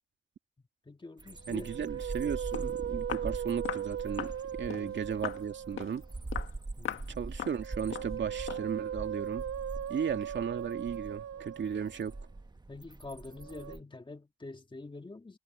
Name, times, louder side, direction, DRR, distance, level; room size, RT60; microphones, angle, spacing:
voice 1, 0.9-1.9 2.6-2.8 4.7-5.0 6.8-7.2 12.7-15.4, left 2 dB, 25° left, 1.7 m, -46 dB
sound 1, 1.2-13.8, right 2 dB, 20° right, 1.1 m, -43 dB
Musical instrument, 1.4-6.1 7.4-12.2 13.3-13.8, right 9 dB, 90° right, 0.8 m, -39 dB
voice 2, 1.5-4.3 4.6-6.0 7.1-9.4 9.9-12.1, right 7 dB, 60° right, 2.5 m, -35 dB
Walk footsteps, 2.2-2.3 2.5-2.7 3.1-3.3 3.6-3.9 4.2-4.4 4.7-4.9 5.2-5.4 5.8-6.0 6.3-6.5 6.8-7.1 7.4-7.6 7.9-8.1 8.5-8.7, left 9 dB, 75° left, 1.7 m, -38 dB
cardioid pair, 70°, 21 cm